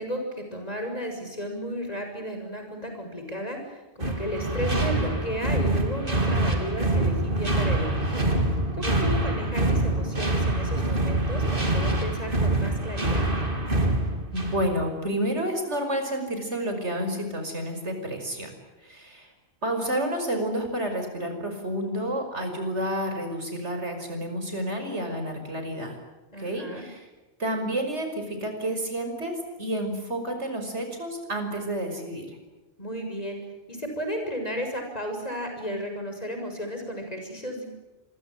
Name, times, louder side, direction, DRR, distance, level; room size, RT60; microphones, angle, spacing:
voice 1, 0.0-8.2 8.7-13.3 26.3-26.8 32.8-33.4 33.7-37.6, equal, 35° left, 4 dB, 7.0 m, -34 dB
sound 1, 4.0-14.8, right 2 dB, 50° right, 3.8 m, -25 dB
voice 2, 14.3-18.5 18.8-19.3 19.6-26.0 26.4-27.1 27.4-32.4, right 1 dB, 80° right, 5 dB, 5.9 m, -30 dB
27.5 x 22.5 x 7.5 m, 1.1 s
omnidirectional pair, 1.2 m